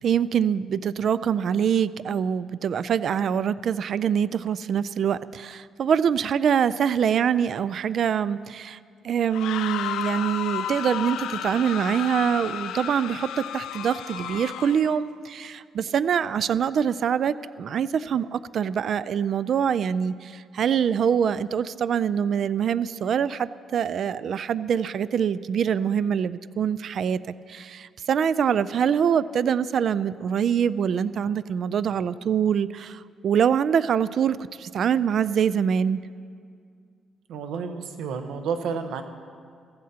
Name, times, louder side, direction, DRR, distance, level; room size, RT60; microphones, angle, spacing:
voice 1, 0.0-8.8 9.0-27.2 27.5-36.0, right 8 dB, 60° right, 16 dB, 0.3 m, -24 dB
sound 1, 9.2-15.0, left 9 dB, 85° left, 0.6 m, -32 dB
voice 2, 37.3-39.0, right 6 dB, 85° right, 7 dB, 1.0 m, -30 dB
22.5 x 15.0 x 2.9 m, 2.2 s
cardioid pair, 90°, 0 cm